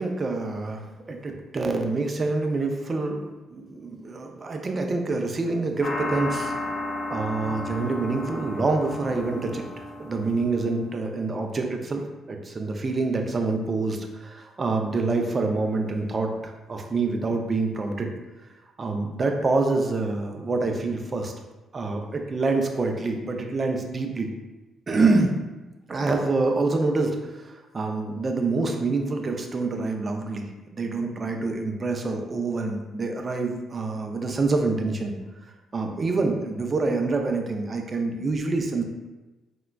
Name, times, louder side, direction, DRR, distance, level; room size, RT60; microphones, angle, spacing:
voice 1, 0.0-6.5 7.1-12.0 12.3-18.1 18.8-21.3 21.7-24.3 24.9-25.3 25.9-30.4 30.7-35.2 35.7-38.8, right 3 dB, 35° right, 3 dB, 0.4 m, -26 dB
sound 1, 5.8-11.1, left 2 dB, 45° left, 0.5 m, -33 dB
3.6 x 2.2 x 2.2 m, 1.1 s
cardioid pair, 90°, 0 cm